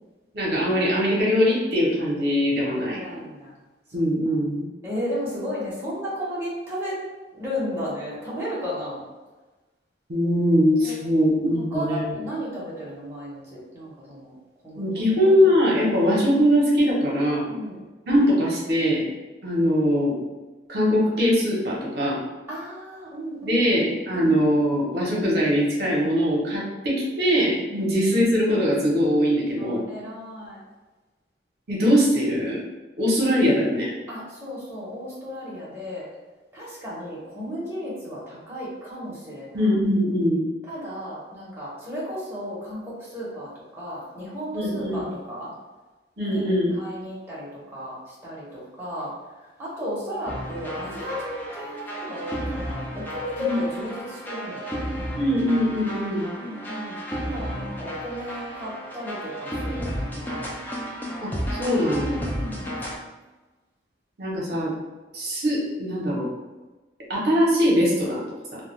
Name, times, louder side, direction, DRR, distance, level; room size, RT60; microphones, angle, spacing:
voice 1, 0.3-3.0 3.9-4.6 10.1-12.0 14.8-17.5 18.1-19.0 19.4-20.2 20.7-22.2 23.4-29.8 31.7-32.6 33.0-33.9 39.5-40.4 44.5-45.0 46.2-46.7 53.4-53.6 55.2-56.3 61.2-61.3 61.6-62.4 64.2-64.7 65.1-66.3 67.1-68.2, equal, 60° right, -5 dB, 0.7 m, -22 dB
voice 2, 2.8-3.5 4.3-4.4 4.8-7.0 7.3-9.0 10.8-11.0 11.7-14.3 14.6-15.1 17.5-17.9 22.5-24.3 27.7-27.9 29.6-30.6 34.1-36.1 36.5-39.7 40.7-45.5 46.2-49.1 49.4-55.0 56.3-60.6 62.2-62.7, equal, 15° right, -8 dB, 0.7 m, -34 dB
sound 1, 50.3-63.0, equal, 10° left, 0.3 m, -33 dB
2.3 x 2.1 x 3.0 m, 1.2 s
head